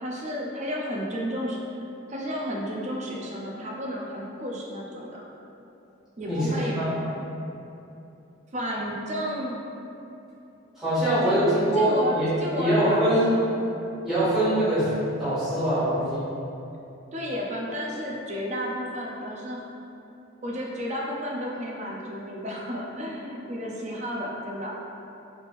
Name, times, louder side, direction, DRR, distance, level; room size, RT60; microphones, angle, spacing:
voice 1, 0.0-1.6 2.1-5.2 6.2-6.8 8.5-9.6 11.2-13.5 17.1-19.6 20.4-24.7, equal, 35° right, -3 dB, 0.4 m, -32 dB
voice 2, 6.2-7.0 10.8-12.3 12.5-13.4 14.0-14.9 15.2-16.2, right 1 dB, ahead, -15 dB, 1.5 m, -23 dB
3.3 x 3.3 x 2.5 m, 2.9 s
head